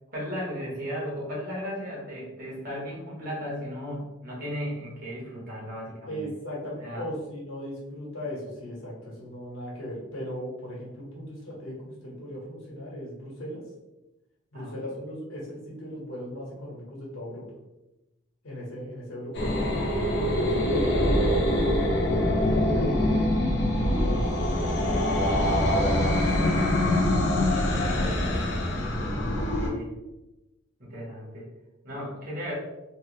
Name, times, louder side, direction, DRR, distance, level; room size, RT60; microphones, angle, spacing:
voice 1, 0.1-6.2 6.8-7.0 14.5-14.7 29.4-29.9 30.8-31.5 31.8-32.5, equal, 45° right, -5 dB, 1.2 m, -35 dB
voice 2, 6.1-13.6 14.5-17.4 18.4-19.5 20.4-21.3 22.1-23.3 23.8-24.9 25.3-26.7 27.7-28.4, equal, 90° left, -4 dB, 1.2 m, -37 dB
sound 1, 19.3-29.7, left 1 dB, 55° left, 0.6 m, -24 dB
3.2 x 2.1 x 3.1 m, 0.98 s
head